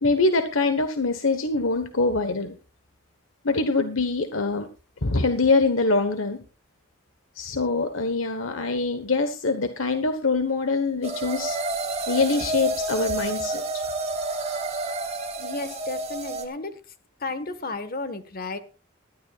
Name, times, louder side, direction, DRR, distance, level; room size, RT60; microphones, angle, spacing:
voice 1, 0.0-2.5 3.4-4.7 5.0-6.4 7.3-11.6 12.1-13.8, left 3 dB, 90° left, 8 dB, 1.3 m, -24 dB
sound 1, 11.0-16.5, right 2 dB, 30° right, 2.1 m, -29 dB
voice 2, 15.4-16.8 17.2-18.6, left 3 dB, 50° left, 10 dB, 1.5 m, -33 dB
20.0 x 13.0 x 2.4 m, 0.33 s
head